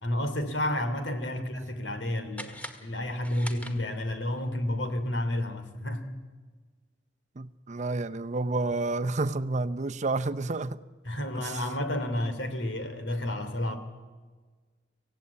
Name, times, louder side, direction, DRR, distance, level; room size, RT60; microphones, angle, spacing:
voice 1, 0.0-6.1 11.0-13.8, left 1 dB, 80° left, 3.0 m, -31 dB
sound 1, 2.3-4.3, equal, 10° left, 1.8 m, -44 dB
voice 2, 7.4-10.8 11.4-11.6, right 3 dB, 40° right, 0.7 m, -30 dB
26.5 x 17.0 x 8.4 m
head